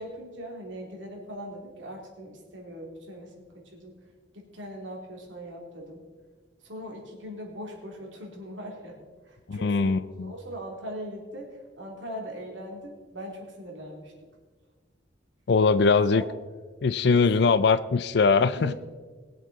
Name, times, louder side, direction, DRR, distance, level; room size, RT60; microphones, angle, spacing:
voice 1, 0.0-3.9 4.3-6.0 6.6-9.0 9.2-14.4 15.9-16.3 17.1-17.3 18.5-18.7, equal, 75° right, 0 dB, 2.8 m, -40 dB
voice 2, 9.5-10.3 15.5-16.2 16.8-18.7, left 4 dB, 60° left, 14 dB, 0.4 m, -21 dB
21.0 x 7.7 x 4.0 m, 1.4 s
head